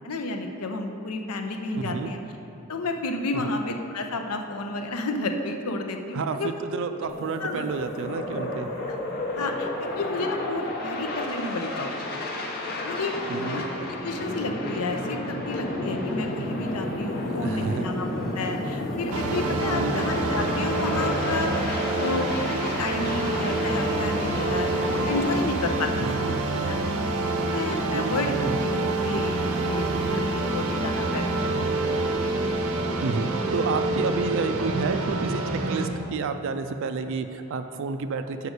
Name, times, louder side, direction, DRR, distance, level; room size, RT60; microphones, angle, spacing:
voice 1, 0.0-2.2 2.7-6.5 7.4-7.7 9.4-9.7 9.9-12.2 12.8-13.1 13.5-13.6 14.0-18.1 18.3-26.4 26.7-28.3 28.6-32.0, left 2 dB, 80° left, 4 dB, 0.7 m, -31 dB
voice 2, 1.8-2.1 3.3-3.5 6.1-8.7 13.3-13.6 17.3-17.9 19.7-20.0 26.0-26.2 27.9-28.6 33.0-38.5, right 4 dB, 60° right, 8 dB, 0.3 m, -30 dB
sound 1, 7.1-25.4, left 1 dB, 45° left, 0.8 m, -31 dB
sound 2, 17.2-21.4 22.0-25.7 28.2-30.2, equal, 5° left, 0.8 m, -48 dB
sound 3, 19.1-35.9, right 2 dB, 75° right, 0.7 m, -27 dB
6.7 x 4.9 x 6.5 m, 2.9 s
head